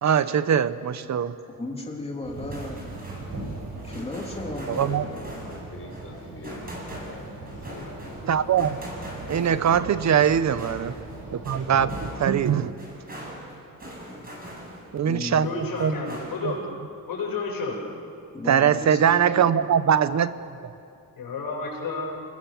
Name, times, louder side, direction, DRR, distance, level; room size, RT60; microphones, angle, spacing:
voice 1, 0.0-1.4 4.7-5.0 8.3-8.7 9.3-10.9 11.3-12.8 14.9-15.5 15.8-15.9 16.4-16.5 18.5-20.3 20.6-20.7, right 8 dB, 55° right, 14 dB, 0.9 m, -22 dB
voice 2, 1.5-2.8 3.8-5.4 12.5-12.6 15.0-15.4 17.7-17.8 18.3-19.5, left 2 dB, 15° left, 0 dB, 3.0 m, -36 dB
sound 1, 2.2-12.1, right 2 dB, 85° right, 6.4 m, -39 dB
sound 2, 2.3-15.0 15.4-16.6, equal, 25° right, 7.5 m, -41 dB
voice 3, 4.6-8.0, left 2 dB, 40° left, 1 dB, 5.0 m, -43 dB
voice 4, 15.4-16.6 17.1-17.8 21.2-22.0, left 4 dB, 85° left, -2 dB, 7.4 m, -31 dB
29.0 x 20.5 x 7.3 m, 2.5 s
wide cardioid pair, 135°, 34 cm